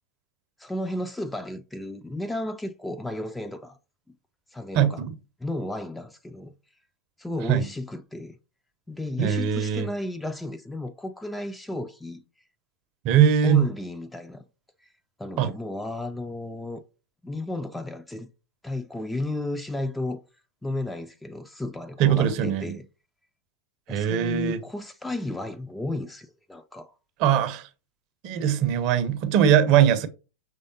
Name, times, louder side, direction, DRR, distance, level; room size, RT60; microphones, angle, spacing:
voice 1, 0.6-3.8 4.5-5.0 5.4-6.5 7.2-8.4 8.9-12.2 13.4-14.4 15.2-16.8 17.2-18.3 18.6-20.2 20.6-22.9 23.9-26.9, left 1 dB, 5° left, 0.3 m, -33 dB
voice 2, 4.7-5.1 7.5-7.6 9.2-9.9 13.0-13.7 15.4-15.5 22.0-22.8 23.9-24.6 27.2-27.7 28.2-30.1, right 9 dB, 40° right, 0.5 m, -21 dB
5.2 x 3.3 x 2.6 m
figure-of-eight pair, 90°, 0 cm